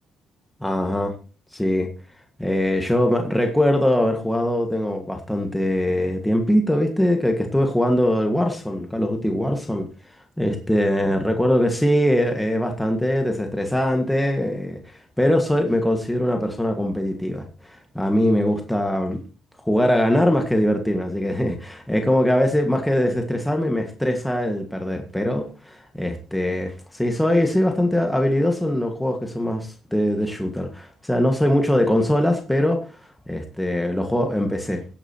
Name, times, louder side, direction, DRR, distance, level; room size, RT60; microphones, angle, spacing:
voice 1, 0.6-1.1 1.5-1.9 2.4-9.9 10.4-14.8 15.2-19.2 19.6-32.8 33.3-34.9, left 1 dB, 5° left, 1.8 m, -22 dB
17.0 x 9.0 x 3.0 m
cardioid pair, 90°, 0 cm